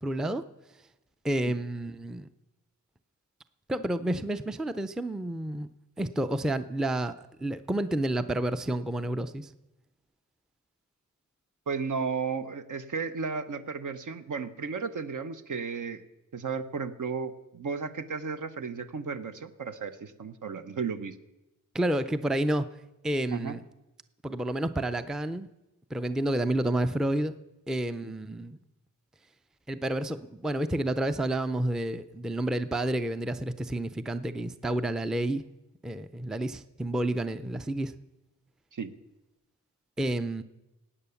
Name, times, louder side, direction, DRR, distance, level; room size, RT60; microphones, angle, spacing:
voice 1, 0.0-0.4 1.2-2.3 3.7-5.7 6.0-9.5 21.7-22.7 23.0-23.6 24.2-25.5 25.9-27.3 27.7-28.6 29.7-35.4 35.8-37.9 40.0-40.4, right 1 dB, ahead, 12 dB, 0.4 m, -30 dB
voice 2, 11.7-16.0 16.3-21.2 23.3-23.6 28.0-28.1 38.7-38.9, right 5 dB, 65° right, 10 dB, 1.0 m, -34 dB
19.0 x 8.9 x 7.0 m, 0.97 s
wide cardioid pair, 160°, 33 cm